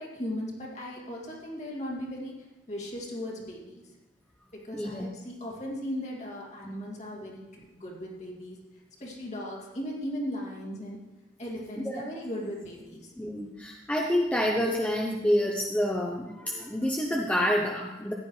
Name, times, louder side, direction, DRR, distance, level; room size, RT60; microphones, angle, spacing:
voice 1, 0.0-3.9 4.5-8.6 9.0-11.0 11.4-13.1, equal, 40° left, -2 dB, 2.4 m, -37 dB
voice 2, 4.7-5.1 11.9-12.0 13.2-18.1, equal, 10° left, -1 dB, 0.7 m, -28 dB
14.5 x 9.9 x 3.2 m, 1.1 s
head